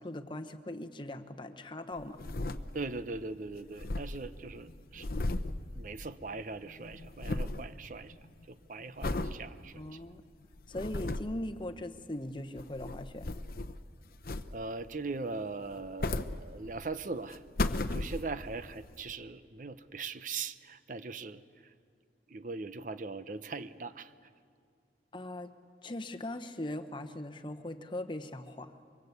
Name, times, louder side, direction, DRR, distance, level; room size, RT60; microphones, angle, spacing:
voice 1, 0.0-2.2 9.7-10.2 10.7-13.2 25.1-25.5 25.8-28.8, left 1 dB, 25° left, 8 dB, 1.0 m, -40 dB
sound 1, 2.0-3.1 3.3-3.4 3.6-6.4 6.7-7.7 8.1-8.4 9.0-9.4 9.9-10.0 10.5-11.4 12.4-13.9 14.2-14.8 15.7-16.9 17.3-18.5 19.1-19.2, left 2 dB, 55° left, 0.8 m, -35 dB
voice 2, 2.7-5.2 5.8-8.1 8.5-10.0 14.5-17.4 17.9-21.7 22.3-24.1, right 3 dB, 45° right, 12 dB, 0.8 m, -40 dB
25.0 x 23.5 x 8.2 m, 2.2 s
head